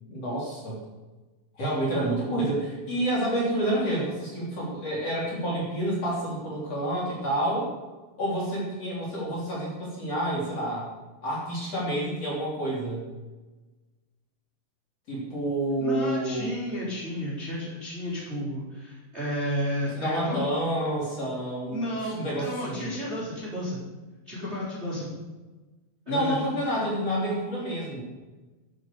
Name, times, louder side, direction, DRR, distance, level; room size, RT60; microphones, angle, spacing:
voice 1, 0.1-0.8 1.6-7.7 8.2-10.9 11.2-13.0 15.1-16.6 20.0-21.8 22.1-22.9 26.1-28.0, right 1 dB, 35° left, -5 dB, 4.3 m, -28 dB
voice 2, 15.8-20.4 21.7-23.8 24.3-25.1 26.1-26.4, equal, 15° right, -6 dB, 3.7 m, -32 dB
12.5 x 9.8 x 6.9 m, 1.2 s
omnidirectional pair, 5.2 m